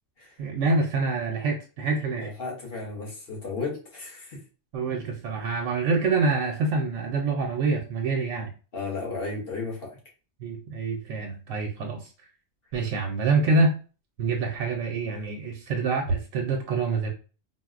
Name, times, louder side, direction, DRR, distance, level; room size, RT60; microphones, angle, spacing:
voice 1, 0.4-2.3 4.7-8.5 10.4-12.0 12.7-13.7 14.2-17.1, right 3 dB, 90° right, 1 dB, 0.9 m, -26 dB
voice 2, 2.2-4.4 8.7-10.0, left 3 dB, 55° left, -2 dB, 1.1 m, -34 dB
4.0 x 2.0 x 2.4 m, 0.35 s
omnidirectional pair, 1.2 m